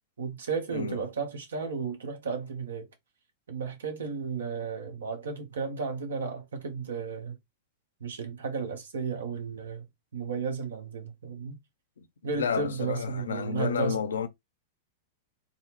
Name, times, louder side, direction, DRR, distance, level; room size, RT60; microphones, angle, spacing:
voice 1, 0.2-2.9 3.5-7.3 8.0-9.8 10.1-11.6 12.2-14.0, right 5 dB, 85° right, 1.0 m, -33 dB
voice 2, 0.7-1.0 12.0-12.1 12.4-14.3, left 7 dB, 85° left, 0.5 m, -31 dB
3.9 x 2.0 x 2.9 m
hypercardioid pair, 110°, 0 cm